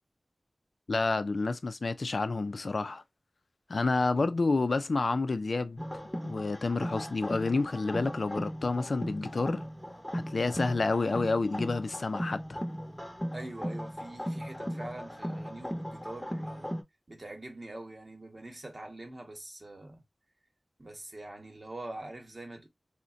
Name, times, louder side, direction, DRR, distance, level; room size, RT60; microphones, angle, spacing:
voice 1, 0.9-3.0 3.7-5.8 6.2-9.7 10.1-12.6, left 3 dB, 80° left, 0.4 m, -29 dB
sound 1, 5.8-16.8, equal, 10° left, 0.8 m, -37 dB
voice 2, 13.3-16.8 17.1-20.0 20.8-22.7, right 2 dB, 45° right, 1.0 m, -44 dB
3.8 x 2.1 x 2.4 m
wide cardioid pair, 60°, 0 cm